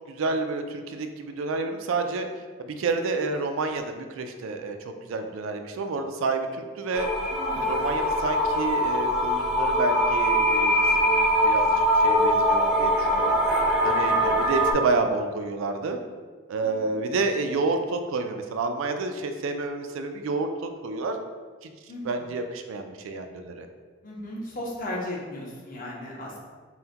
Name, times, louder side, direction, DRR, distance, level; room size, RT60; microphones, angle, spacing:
voice 1, 0.1-2.3 2.6-7.1 7.6-13.4 13.8-16.0 16.5-21.2 21.6-21.7 22.0-23.7, right 3 dB, 70° right, 6 dB, 0.4 m, -29 dB
sound 1, 6.9-14.7, equal, ahead, 0.5 m, -22 dB
voice 2, 7.3-7.8 13.9-14.4 16.6-17.0 21.9-22.3 24.0-26.4, left 1 dB, 40° left, -4 dB, 0.9 m, -36 dB
5.5 x 2.2 x 2.8 m, 1.5 s
head